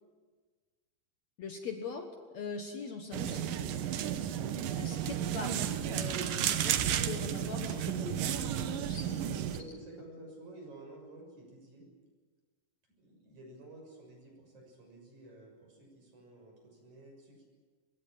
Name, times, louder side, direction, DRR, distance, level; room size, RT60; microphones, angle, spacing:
voice 1, 1.4-3.5 4.7-9.4, left 5 dB, 60° left, 5 dB, 2.3 m, -42 dB
voice 2, 3.1-3.9 6.9-7.2 9.2-11.8 13.0-17.4, right 2 dB, 50° right, 1 dB, 7.8 m, -51 dB
sound 1, 3.1-9.6, right 10 dB, 70° right, 2.6 m, -33 dB
24.0 x 21.5 x 7.6 m, 1.4 s
omnidirectional pair, 4.2 m